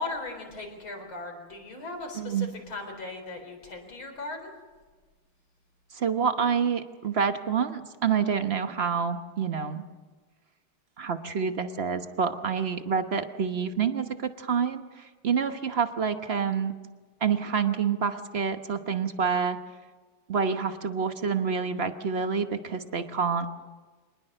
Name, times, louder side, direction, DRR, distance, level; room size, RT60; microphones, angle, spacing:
voice 1, 0.0-4.5, left 3 dB, 70° left, 4 dB, 4.9 m, -38 dB
voice 2, 2.2-2.5 5.9-9.8 11.0-16.7 17.2-19.6 20.3-23.5, right 6 dB, 40° right, 8 dB, 0.9 m, -27 dB
25.0 x 20.0 x 6.7 m, 1.3 s
omnidirectional pair, 2.3 m